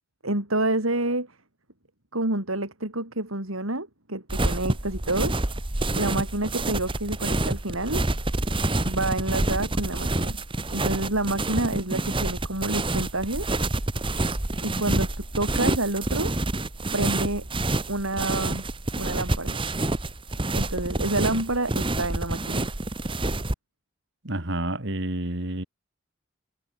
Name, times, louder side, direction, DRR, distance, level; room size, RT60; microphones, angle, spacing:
voice 1, 0.2-1.4 2.1-5.4 5.9-8.0 8.8-10.4 10.7-13.6 14.6-16.4 16.9-17.5 17.9-18.6 19.0-19.6 20.5-22.7, right 2 dB, 80° right, 6.8 m, -28 dB
sound 1, 4.3-23.5, right 2 dB, 25° right, 1.4 m, -28 dB
voice 2, 24.2-25.6, right 1 dB, 55° right, 3.0 m, -29 dB
head